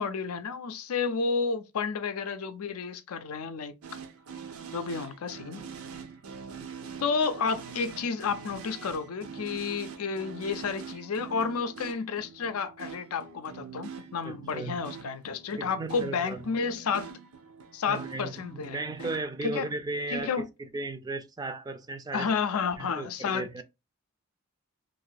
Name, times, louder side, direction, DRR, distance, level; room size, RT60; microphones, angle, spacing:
voice 1, 0.0-3.8 4.7-5.6 7.0-17.1 17.7-18.8 19.4-19.7 20.1-20.5 22.1-23.5, left 5 dB, 85° left, 0.5 m, -31 dB
sound 1, 3.8-19.2, right 6 dB, 80° right, 0.6 m, -44 dB
voice 2, 14.2-14.8 15.6-16.5 17.9-22.3 22.8-23.6, right 2 dB, 20° right, 0.4 m, -36 dB
2.6 x 2.5 x 3.9 m
head